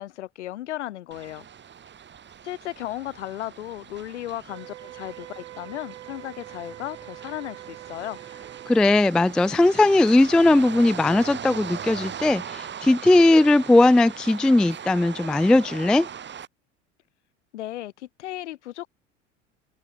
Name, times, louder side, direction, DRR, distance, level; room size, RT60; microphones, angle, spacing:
voice 1, 0.0-1.4 2.4-8.2 17.5-18.9, left 14 dB, 65° left, 8.0 m, -35 dB
sound 1, 1.1-16.5, right 8 dB, 30° right, 4.0 m, -40 dB
Wind instrument woodwind instrument, 4.5-9.0, right 16 dB, 65° right, 5.1 m, -44 dB
voice 2, 8.7-16.1, left 2 dB, ahead, 0.3 m, -18 dB
figure-of-eight pair, 70°, 37 cm